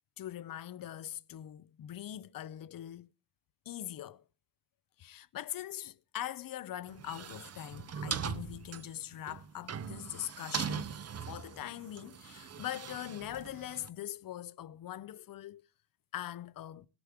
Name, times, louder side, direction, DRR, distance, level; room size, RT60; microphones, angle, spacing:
voice 1, 0.2-3.1 3.7-4.2 5.0-10.9 11.3-15.6 16.1-16.9, left 12 dB, 50° left, 0.5 m, -42 dB
sound 1, 6.9-13.9, right 7 dB, 35° right, 0.5 m, -40 dB
18.5 x 6.8 x 3.5 m
wide cardioid pair, 160°, 43 cm